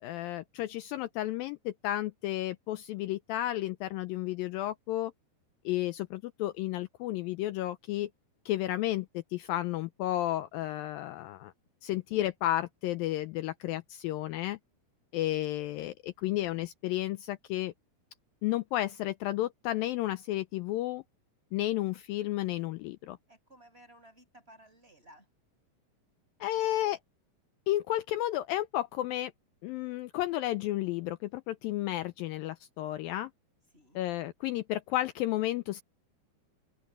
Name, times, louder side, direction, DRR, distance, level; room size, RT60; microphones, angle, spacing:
voice 1, 0.0-5.1 5.7-8.1 8.5-11.5 11.8-14.6 15.1-17.7 18.4-21.0 21.5-23.2 26.4-27.0 27.7-29.3 29.6-33.3 34.0-35.8, left 15 dB, 90° left, 2.1 m, -32 dB
voice 2, 23.3-25.3 33.7-34.0, right 1 dB, 15° right, 6.9 m, -57 dB
omnidirectional pair, 4.8 m